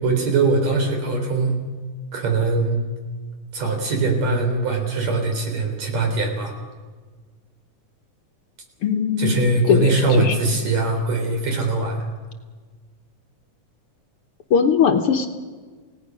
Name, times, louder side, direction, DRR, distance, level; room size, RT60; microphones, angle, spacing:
voice 1, 0.0-1.6 2.1-2.8 3.5-6.6 9.2-12.0, right 3 dB, 60° right, 3 dB, 5.1 m, -21 dB
voice 2, 8.8-10.4 14.5-15.3, left 7 dB, 60° left, 6 dB, 1.8 m, -20 dB
29.0 x 17.5 x 6.3 m, 1.4 s
omnidirectional pair, 3.5 m